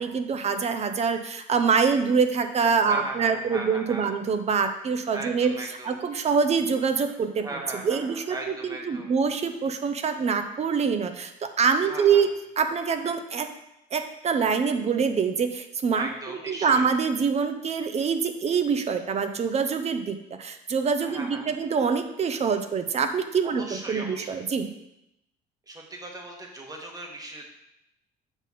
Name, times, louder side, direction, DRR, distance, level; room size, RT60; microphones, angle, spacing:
voice 1, 0.0-5.6 5.8-7.4 7.8-12.3 12.6-13.5 13.9-24.7, right 6 dB, 40° right, 8 dB, 0.7 m, -25 dB
voice 2, 2.8-4.1 5.1-6.0 7.4-9.1 11.9-12.2 15.9-16.8 21.1-21.5 23.4-24.5 25.7-27.4, right 2 dB, 20° right, 1 dB, 1.5 m, -38 dB
7.0 x 5.5 x 4.2 m, 0.83 s
cardioid pair, 110°, 17 cm